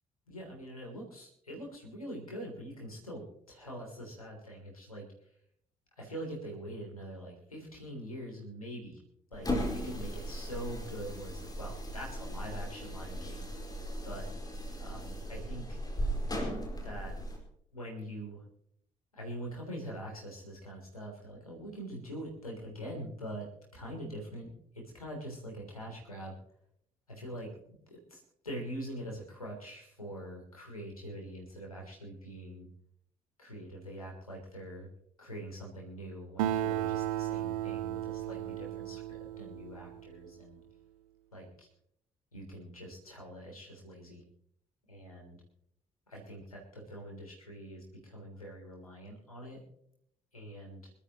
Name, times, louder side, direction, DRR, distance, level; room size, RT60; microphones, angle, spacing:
voice 1, 0.3-3.2 3.5-5.1 6.0-9.0 9.3-13.4 14.0-14.3 14.8-15.8 16.8-17.1 17.7-18.4 19.1-23.4 23.7-26.4 27.1-27.5 27.9-32.7 33.4-34.9 35.2-40.6 41.3-41.7 42.3-44.2 44.9-45.4 46.1-49.6 50.3-50.9, right 1 dB, 85° left, -1 dB, 3.3 m, -44 dB
sound 1, 9.3-17.4, equal, 20° left, 4.4 m, -37 dB
Acoustic guitar, 36.4-40.2, right 12 dB, 70° right, 0.7 m, -34 dB
25.5 x 12.5 x 3.0 m, 0.71 s
figure-of-eight pair, 45°, 18 cm